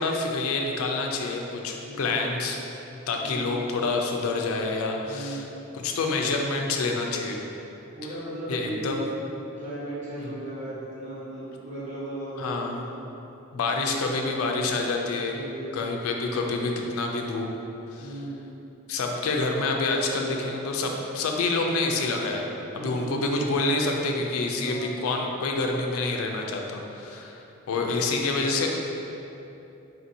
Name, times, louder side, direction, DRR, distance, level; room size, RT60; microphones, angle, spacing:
voice 1, 0.0-2.6 2.9-5.4 5.7-7.4 8.5-9.0 10.2-10.3 12.4-12.8 13.5-15.4 15.7-17.5 17.9-18.1 18.9-22.4 22.7-28.7, left 3 dB, 85° left, 2 dB, 0.4 m, -27 dB
voice 2, 1.8-2.2 3.2-3.6 5.0-5.6 7.9-8.9 9.6-13.1 13.7-14.0 15.3-15.7 18.0-18.5 22.7-23.2 24.6-25.0 27.1-27.2 27.8-28.0, right 1 dB, 35° right, -10 dB, 1.1 m, -37 dB
3.8 x 2.6 x 2.7 m, 3.0 s
head